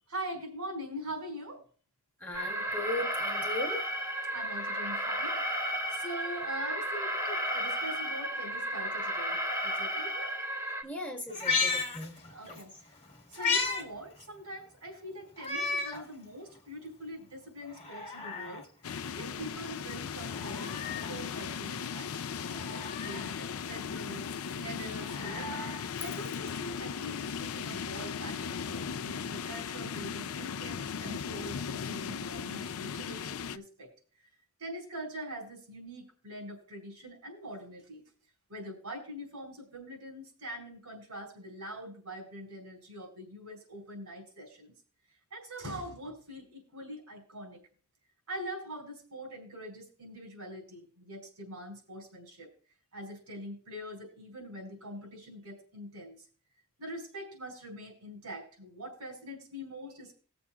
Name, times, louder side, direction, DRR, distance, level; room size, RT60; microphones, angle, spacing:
voice 1, 0.1-1.6 4.3-10.3 12.2-13.0 13.3-18.7 19.2-22.1 22.4-25.7 26.0-33.9 34.6-38.0 38.5-44.7 45.3-47.6 48.3-52.5 52.9-56.2 56.8-60.1, equal, 85° right, 2 dB, 4.7 m, -43 dB
voice 2, 2.2-3.8 10.8-12.2 12.5-12.6, left 1 dB, 10° left, 0 dB, 1.6 m, -37 dB
Alarm, 2.3-10.8, equal, 15° right, 1.4 m, -33 dB
Meow, 11.3-12.6 13.0-13.8 14.2-14.3 15.4-16.0 16.6-16.7 17.6-18.6 20.2-21.2 22.5-23.3 24.8-26.5 27.7-27.8, left 4 dB, 30° left, 1.5 m, -34 dB
sound 1, 18.8-33.6, left 6 dB, 70° left, 0.5 m, -37 dB
20.5 x 7.0 x 2.4 m, 0.42 s
head